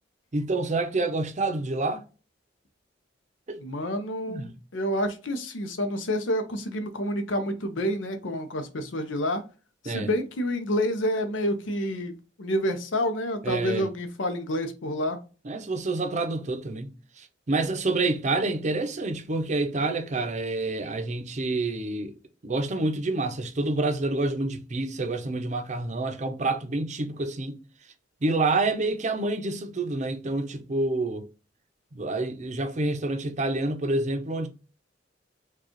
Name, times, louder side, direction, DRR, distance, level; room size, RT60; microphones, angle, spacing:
voice 1, 0.3-2.0 3.5-3.6 4.3-4.5 9.9-10.1 13.4-13.9 15.4-22.1 22.4-27.6 28.2-31.3 31.9-34.5, right 2 dB, 40° right, 0.6 m, -28 dB
voice 2, 3.6-9.4 9.8-15.2, equal, 80° left, 0.7 m, -28 dB
4.6 x 2.4 x 3.0 m
head